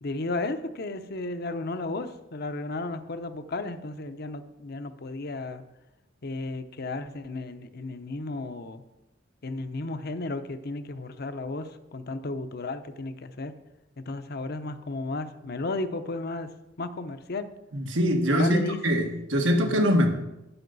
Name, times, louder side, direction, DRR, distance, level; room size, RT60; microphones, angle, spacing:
voice 1, 0.0-5.6 6.2-8.8 9.4-13.5 14.1-16.5 16.8-17.5 18.3-18.8 19.6-19.9, left 2 dB, 55° left, 9 dB, 0.8 m, -34 dB
voice 2, 17.7-20.1, equal, 85° right, 2 dB, 1.8 m, -23 dB
12.5 x 10.0 x 4.1 m, 0.93 s
head